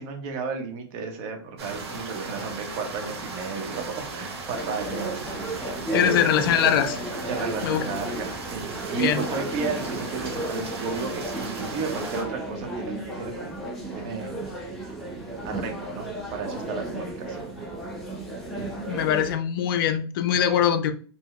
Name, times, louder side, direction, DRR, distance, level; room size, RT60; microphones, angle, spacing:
voice 1, 0.0-6.5 7.3-13.5 13.9-14.4 15.4-17.5, right 5 dB, 35° right, 0.8 m, -33 dB
sound 1, 1.6-12.2, right 3 dB, 85° right, 1.3 m, -36 dB
sound 2, 4.5-19.3, right 1 dB, ahead, 0.8 m, -34 dB
voice 2, 5.9-7.0 7.6-7.8 9.0-9.2 18.9-20.9, left 9 dB, 55° left, 0.4 m, -22 dB
3.9 x 2.0 x 3.1 m
supercardioid pair, 150°, 14 cm